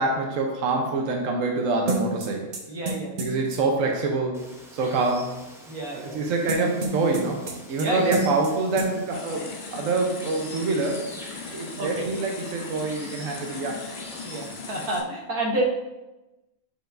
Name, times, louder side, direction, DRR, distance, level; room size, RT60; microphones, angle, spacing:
voice 1, 0.0-2.5 3.2-4.4 4.7-5.3 5.9-7.4 7.7-11.0 11.5-13.8, right 3 dB, 70° right, 1 dB, 1.1 m, -26 dB
sound 1, 1.9-3.6 6.5-7.9 8.1-8.5 8.8-8.9, right 2 dB, 50° right, 0.9 m, -29 dB
voice 2, 2.7-3.1 5.1-5.2 5.7-6.2 7.8-8.2 11.8-12.1 14.2-15.6, right 1 dB, 85° right, 0 dB, 1.6 m, -29 dB
Water, 4.3-15.0, equal, 5° right, 0.4 m, -46 dB
sound 2, 9.1-15.0, left 4 dB, 50° left, 0.6 m, -39 dB
7.7 x 4.9 x 2.5 m, 1.0 s
omnidirectional pair, 1.5 m